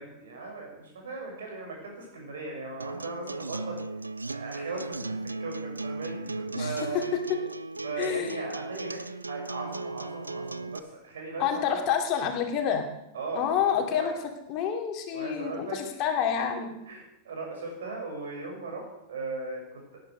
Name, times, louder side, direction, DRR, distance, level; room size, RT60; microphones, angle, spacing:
voice 1, 0.0-3.8 4.3-7.1 7.8-11.8 13.1-14.1 15.1-15.8 16.9-20.0, right 3 dB, 65° right, 1 dB, 6.6 m, -38 dB
Acoustic guitar, 2.8-10.8, right 3 dB, 80° right, 0.5 m, -36 dB
voice 2, 6.5-7.0 8.0-8.4 11.4-12.9 13.3-14.1 14.5-16.7, left 8 dB, 40° left, 3 dB, 2.8 m, -28 dB
19.0 x 10.5 x 6.4 m, 0.84 s
figure-of-eight pair, 90°, 0 cm